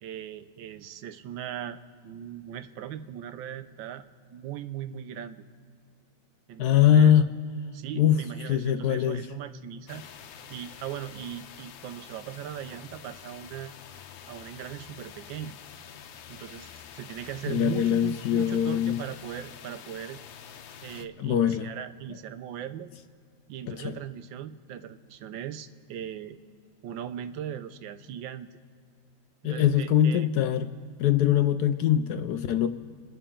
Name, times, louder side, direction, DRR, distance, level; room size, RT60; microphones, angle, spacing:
voice 1, 0.0-1.8 2.0-4.0 4.3-5.4 6.5-7.1 7.7-10.0 10.5-13.7 14.3-15.6 16.3-20.2 20.8-22.9 23.5-26.4 26.8-28.5 29.4-30.3, right 9 dB, 85° right, 12 dB, 1.4 m, -39 dB
voice 2, 6.6-7.3 8.0-8.2 8.5-9.2 17.5-19.0 21.2-21.7 23.7-24.0 29.4-30.7 31.0-32.7, left 10 dB, 70° left, 9 dB, 1.0 m, -22 dB
sound 1, 9.9-21.0, left 8 dB, 85° left, 1.5 m, -47 dB
28.5 x 11.0 x 3.8 m, 2.2 s
omnidirectional pair, 2.1 m